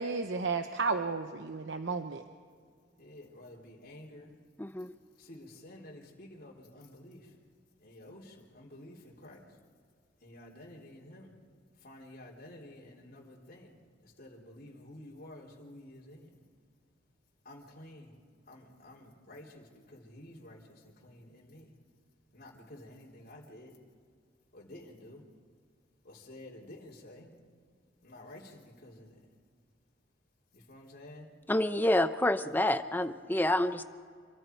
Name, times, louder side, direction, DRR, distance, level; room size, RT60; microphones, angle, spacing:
voice 1, 0.0-2.2, right 4 dB, 70° right, 7 dB, 0.8 m, -33 dB
voice 2, 3.0-4.3 5.2-7.3 7.8-9.4 10.2-11.3 11.8-13.8 14.0-16.3 17.5-18.2 18.5-21.7 22.3-23.7 24.5-25.2 26.0-27.3 28.0-29.1 30.5-31.3, left 1 dB, 50° left, -3 dB, 3.6 m, -51 dB
voice 3, 4.6-4.9 31.5-33.8, left 1 dB, 10° left, 10 dB, 0.7 m, -28 dB
27.5 x 24.5 x 4.6 m, 2.1 s
head